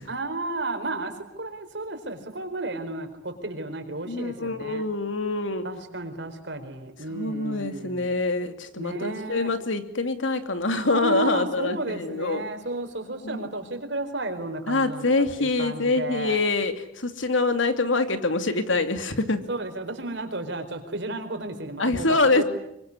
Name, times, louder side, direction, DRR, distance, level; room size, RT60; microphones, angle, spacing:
voice 1, 0.1-4.8 5.6-8.1 8.8-9.5 10.8-16.4 19.5-22.1 22.3-22.4, right 2 dB, 65° right, 7 dB, 4.4 m, -33 dB
voice 2, 4.1-5.6 7.1-12.4 13.2-13.4 14.7-19.4 21.8-22.4, left 3 dB, 90° left, 9 dB, 2.7 m, -25 dB
24.5 x 24.0 x 9.8 m, 0.80 s
head